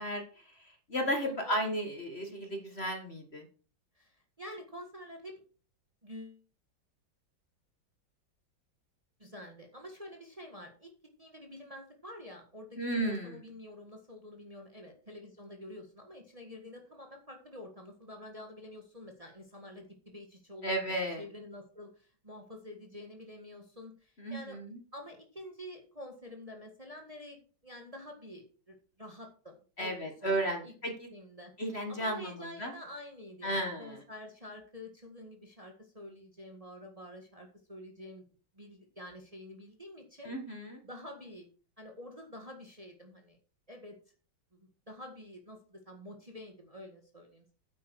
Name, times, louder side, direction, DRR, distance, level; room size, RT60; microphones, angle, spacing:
voice 1, 0.0-3.4 12.8-13.3 20.6-21.2 24.2-24.8 29.8-31.1 31.6-32.3 32.6-32.7 33.4-34.0 40.3-40.8, right 1 dB, 35° left, 4 dB, 1.8 m, -34 dB
voice 2, 1.2-1.6 3.9-5.4 6.0-6.4 9.2-10.9 11.2-24.6 24.9-30.7 31.1-31.5 31.9-38.3 38.5-40.3 40.8-41.5 41.8-43.4 43.7-44.0 44.5-47.4, left 1 dB, 20° right, 3 dB, 1.7 m, -48 dB
9.6 x 8.4 x 4.7 m, 0.37 s
omnidirectional pair, 2.1 m